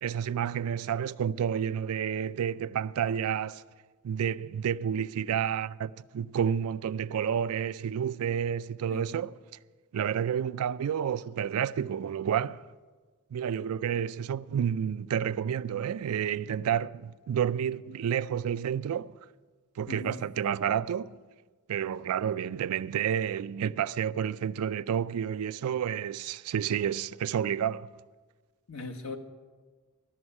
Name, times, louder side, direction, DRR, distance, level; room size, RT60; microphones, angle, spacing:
voice 1, 0.0-3.6 4.0-9.3 9.9-12.7 13.3-19.2 19.8-21.2 21.7-27.9, right 8 dB, 85° right, 0.3 m, -30 dB
voice 2, 8.9-9.2 19.9-20.2 28.7-29.2, left 2 dB, 85° left, 1.2 m, -39 dB
12.5 x 7.0 x 9.7 m
head